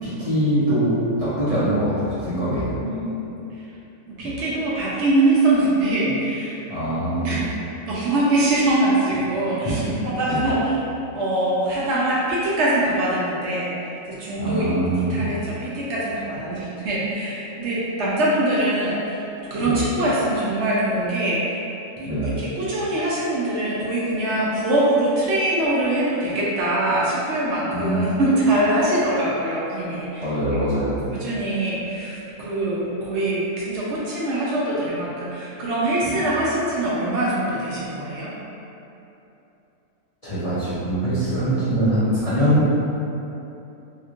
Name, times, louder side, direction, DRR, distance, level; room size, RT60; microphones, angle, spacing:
voice 1, 0.0-2.8 4.2-4.3 6.7-7.4 10.2-10.5 14.4-15.3 19.6-19.8 22.1-22.4 27.7-28.0 30.2-31.0 36.1-36.2 40.2-42.7, right 1 dB, 40° left, -14 dB, 0.5 m, -23 dB
voice 2, 2.8-3.3 4.1-6.6 7.2-7.4 7.9-9.8 10.2-10.8 11.1-14.7 15.1-19.2 19.5-21.6 22.0-30.3 31.1-38.3, right 1 dB, 65° right, -7 dB, 0.8 m, -23 dB
3.2 x 2.9 x 2.4 m, 2.9 s
omnidirectional pair, 1.4 m